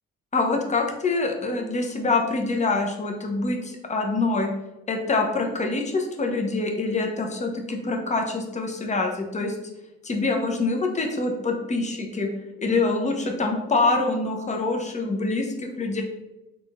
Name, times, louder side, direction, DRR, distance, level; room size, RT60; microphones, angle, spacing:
voice 1, 0.3-4.5 4.9-9.6 10.1-12.3 12.6-16.0, left 3 dB, 25° left, 2 dB, 0.7 m, -25 dB
3.6 x 2.5 x 3.5 m, 1.0 s
cardioid pair, 90°, 30 cm